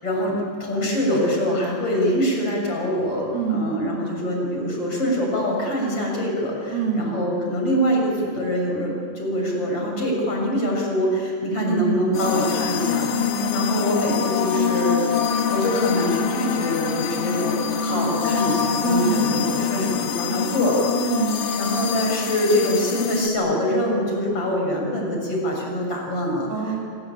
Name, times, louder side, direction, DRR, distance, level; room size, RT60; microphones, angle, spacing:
voice 1, 0.0-13.1 13.5-20.9 21.6-26.5, equal, 30° left, 0 dB, 7.6 m, -24 dB
voice 2, 3.3-3.8 6.7-7.2 11.6-12.1 13.1-13.7 18.8-19.4 21.0-21.4 26.5-26.8, right 5 dB, 55° right, -1 dB, 4.5 m, -26 dB
sound 1, 12.1-23.3, left 7 dB, 55° left, 2.7 m, -25 dB
27.0 x 24.0 x 9.1 m, 2.5 s
omnidirectional pair, 5.2 m